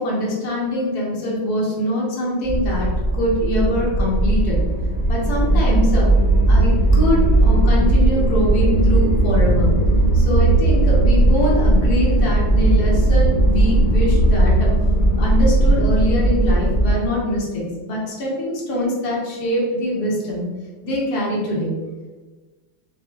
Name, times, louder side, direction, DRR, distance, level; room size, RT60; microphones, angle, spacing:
voice 1, 0.0-4.6 5.1-6.0 6.5-9.7 10.1-14.7 15.2-20.5 20.8-21.7, equal, 60° left, -5 dB, 1.7 m, -23 dB
sound 1, 2.4-16.9, right 1 dB, 35° left, 0.9 m, -17 dB
4.7 x 2.2 x 4.6 m, 1.3 s
omnidirectional pair, 2.0 m